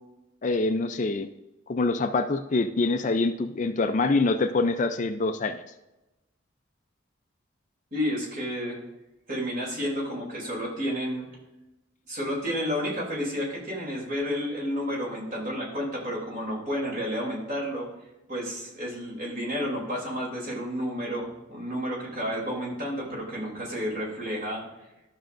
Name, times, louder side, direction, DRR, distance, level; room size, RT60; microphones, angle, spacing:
voice 1, 0.4-1.3 1.7-5.6, left 3 dB, 40° left, 9 dB, 0.4 m, -25 dB
voice 2, 7.9-8.8 9.3-11.3 12.1-17.9 18.3-24.6, equal, 40° right, -3 dB, 2.9 m, -31 dB
12.5 x 6.3 x 2.5 m, 0.99 s
head